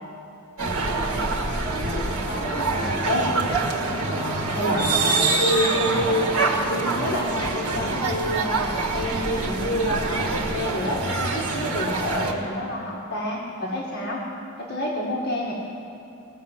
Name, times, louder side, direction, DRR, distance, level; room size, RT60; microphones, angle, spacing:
sound 1, 0.6-12.3, right 3 dB, 90° right, 1.8 m, -25 dB
voice 1, 1.8-3.3 4.0-14.2 14.6-15.5, equal, 45° left, -4 dB, 1.8 m, -28 dB
20.0 x 6.9 x 7.3 m, 3.0 s
head